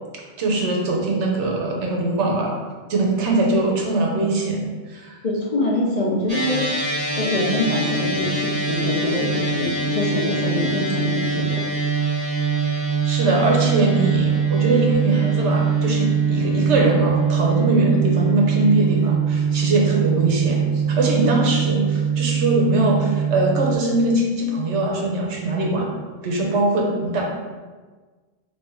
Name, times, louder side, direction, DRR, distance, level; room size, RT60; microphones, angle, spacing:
voice 1, 0.4-2.6 2.9-5.2 13.0-25.9 26.2-27.2, right 2 dB, 85° right, -1 dB, 1.1 m, -21 dB
voice 2, 5.2-6.7 7.2-11.6, left 1 dB, 45° left, -3 dB, 0.6 m, -24 dB
sound 1, 6.3-23.8, right 5 dB, 25° right, 1.1 m, -22 dB
3.1 x 2.9 x 4.6 m, 1.4 s
omnidirectional pair, 1.1 m